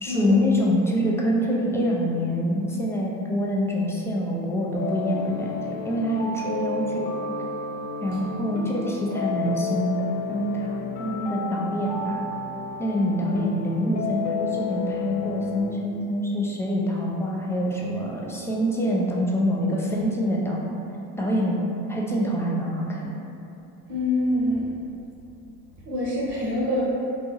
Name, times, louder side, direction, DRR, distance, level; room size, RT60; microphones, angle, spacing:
voice 1, 0.0-7.0 8.0-12.2 12.8-20.7 21.2-23.1, equal, 5° left, -4 dB, 0.5 m, -25 dB
sound 1, 4.8-15.6, left 4 dB, 85° left, 0.6 m, -32 dB
voice 2, 23.9-24.7 25.8-26.8, left 1 dB, 40° right, -7 dB, 0.8 m, -25 dB
3.0 x 2.1 x 2.9 m, 2.8 s
hypercardioid pair, 70°, 41 cm